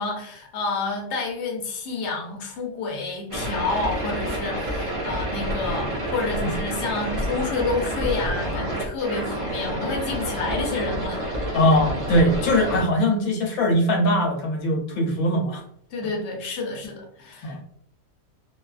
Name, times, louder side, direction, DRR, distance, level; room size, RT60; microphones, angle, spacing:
voice 1, 0.0-11.6 15.9-17.6, left 3 dB, 60° left, 0 dB, 0.9 m, -29 dB
sound 1, 3.3-12.8, right 1 dB, 35° right, 0.5 m, -28 dB
voice 2, 11.5-15.6 17.4-17.6, equal, 85° left, 1 dB, 1.0 m, -21 dB
2.5 x 2.3 x 2.3 m, 0.65 s
omnidirectional pair, 1.5 m